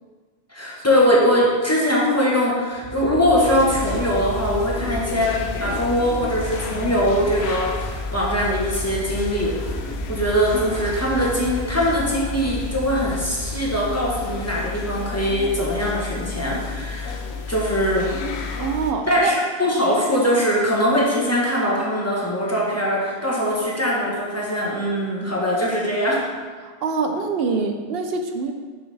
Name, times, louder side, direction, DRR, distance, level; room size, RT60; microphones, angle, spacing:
voice 1, 0.5-9.8 10.1-17.2 17.5-18.1 19.1-19.3 19.6-26.3, equal, 15° left, -4 dB, 1.1 m, -21 dB
sound 1, 2.7-14.9, right 3 dB, 40° right, 0.4 m, -35 dB
sound 2, 3.5-18.9, left 5 dB, 85° left, 0.9 m, -31 dB
voice 2, 18.6-19.4 26.6-28.5, right 4 dB, 70° right, 5 dB, 0.9 m, -25 dB
6.7 x 5.6 x 3.3 m, 1.5 s
omnidirectional pair, 1.0 m